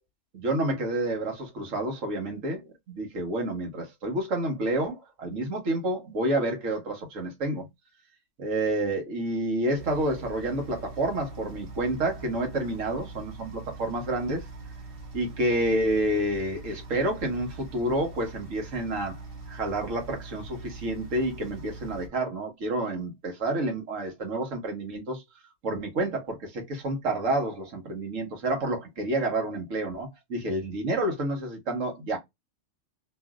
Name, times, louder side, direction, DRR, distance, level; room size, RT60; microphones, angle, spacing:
voice 1, 0.3-7.7 8.4-14.4 15.1-19.2 19.5-25.2 25.6-32.2, right 1 dB, 75° right, 1.5 m, -29 dB
sound 1, 9.8-22.1, right 3 dB, 50° right, 1.0 m, -43 dB
3.0 x 2.7 x 2.3 m
omnidirectional pair, 1.3 m